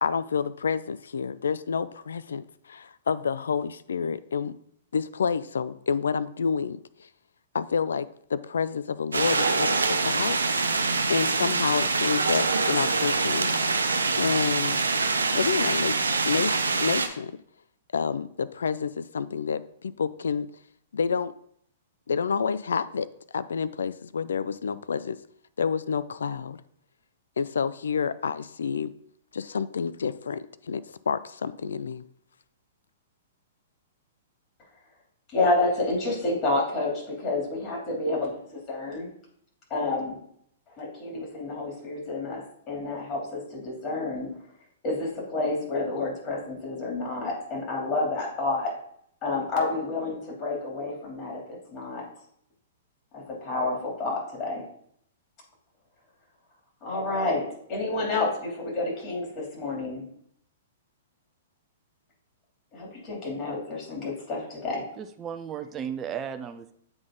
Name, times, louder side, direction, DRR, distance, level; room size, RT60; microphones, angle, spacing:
voice 1, 0.0-4.5 4.9-6.8 7.5-10.4 11.1-13.5 14.2-14.8 15.3-17.3 17.9-20.5 20.9-21.3 22.1-23.1 23.3-25.2 25.6-26.6 27.4-28.9 29.3-32.1, left 6 dB, 75° left, 16 dB, 0.4 m, -29 dB
sound 1, 9.1-17.1, right 3 dB, 90° right, 0.6 m, -25 dB
voice 2, 35.3-39.1 39.7-40.2 40.8-44.3 44.8-48.7 49.2-52.1 53.1-54.6 56.8-60.0 62.7-64.9, left 2 dB, 35° left, -2 dB, 2.9 m, -29 dB
voice 3, 65.0-66.7, right 8 dB, 25° right, 8 dB, 0.5 m, -35 dB
7.7 x 3.9 x 3.8 m, 0.67 s
hypercardioid pair, 115°, 0 cm